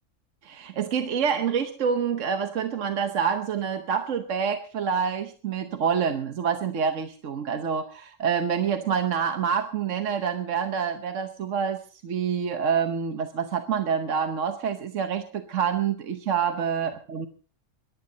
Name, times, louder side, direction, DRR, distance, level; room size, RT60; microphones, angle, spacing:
voice 1, 0.4-17.3, right 7 dB, 75° right, 8 dB, 1.3 m, -27 dB
22.0 x 12.0 x 4.0 m, 0.38 s
omnidirectional pair, 1.3 m